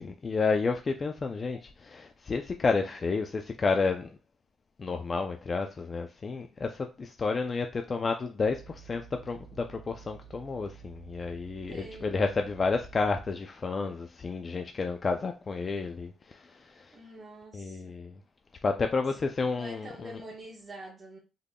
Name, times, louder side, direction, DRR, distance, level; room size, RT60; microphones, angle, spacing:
voice 1, 0.0-1.6 1.8-4.1 4.8-17.0 17.5-18.2 18.6-20.2, left 4 dB, 35° left, 0.4 m, -31 dB
sound 1, 8.4-13.3, right 8 dB, 80° left, 1.6 m, -51 dB
voice 2, 11.7-12.2 16.9-17.9 19.6-21.2, right 1 dB, 40° right, 1.0 m, -46 dB
3.6 x 3.4 x 2.2 m
cardioid pair, 90°, 0 cm